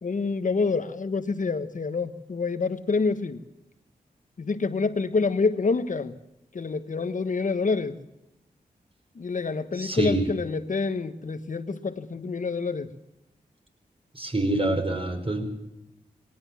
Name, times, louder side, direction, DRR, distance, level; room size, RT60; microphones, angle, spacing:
voice 1, 0.0-3.4 4.4-6.1 6.5-8.0 9.1-12.9, left 4 dB, 55° left, 11 dB, 1.4 m, -27 dB
voice 2, 9.7-10.3 14.1-15.4, right 2 dB, 35° right, 4 dB, 4.9 m, -26 dB
19.0 x 18.5 x 7.4 m, 0.90 s
cardioid pair, 50°, 16 cm